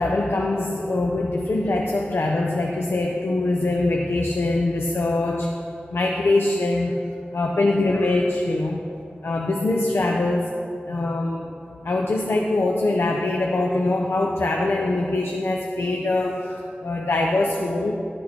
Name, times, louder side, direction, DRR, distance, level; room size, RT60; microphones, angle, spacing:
voice 1, 0.0-5.7 5.9-7.0 7.3-8.9 9.2-10.6 10.9-11.5 11.8-18.0, left 2 dB, 80° left, 1 dB, 0.6 m, -23 dB
11.5 x 6.4 x 4.4 m, 2.5 s
wide cardioid pair, 45°, 4 cm